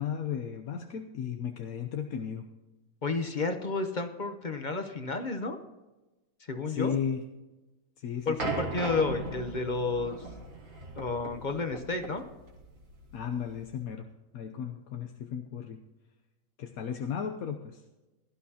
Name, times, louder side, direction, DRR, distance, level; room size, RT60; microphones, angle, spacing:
voice 1, 0.0-2.5 6.7-7.2 8.0-8.6 13.1-14.1 14.3-15.8 16.6-17.8, left 7 dB, 75° left, 5 dB, 1.2 m, -35 dB
voice 2, 3.0-5.6 6.5-6.9 8.3-10.2 11.0-12.2, left 3 dB, 40° left, 7 dB, 0.9 m, -31 dB
sound 1, 8.4-13.8, right 3 dB, 65° right, 2.3 m, -38 dB
17.0 x 12.0 x 2.9 m, 1.1 s
omnidirectional pair, 1.5 m